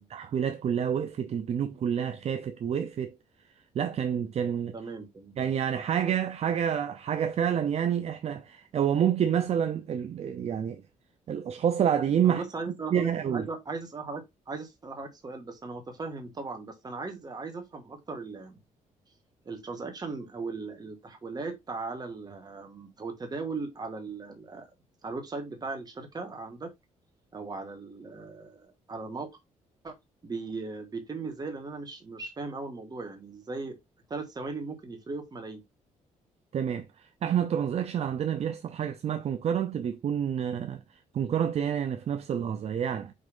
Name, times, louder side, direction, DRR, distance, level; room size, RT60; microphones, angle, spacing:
voice 1, 0.0-3.2 3.7-4.7 5.4-10.8 11.3-12.4 12.9-13.5 36.5-43.1, right 8 dB, 50° right, 0.7 m, -28 dB
voice 2, 4.7-5.3 12.2-18.6 19.4-24.7 25.0-26.7 27.3-29.4 29.8-29.9 30.2-33.8 34.1-35.6, right 3 dB, 30° right, 2.3 m, -38 dB
5.5 x 3.4 x 5.5 m
cardioid pair, 115°, 13 cm